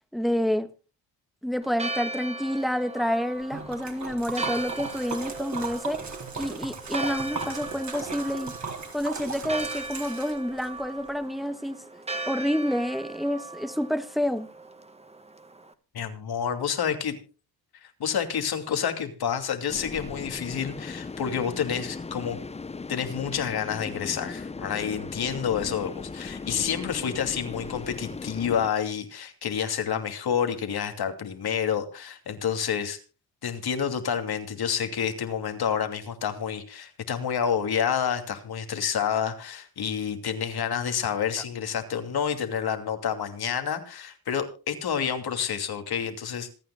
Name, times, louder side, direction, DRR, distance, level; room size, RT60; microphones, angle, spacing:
voice 1, 0.1-0.7 1.4-6.0 6.4-8.5 8.9-11.8 12.3-14.5, equal, ahead, 1.4 m, -28 dB
Church bell, 1.6-15.7, right 2 dB, 15° right, 1.4 m, -38 dB
Liquid, 3.5-10.7, right 4 dB, 45° right, 4.2 m, -36 dB
voice 2, 15.9-17.2 17.8-22.4 22.9-33.0 33.4-46.5, left 8 dB, 70° left, 2.8 m, -29 dB
sound 1, 19.7-28.7, left 4 dB, 15° left, 0.6 m, -38 dB
27.0 x 9.6 x 2.2 m
cardioid pair, 105°, 39 cm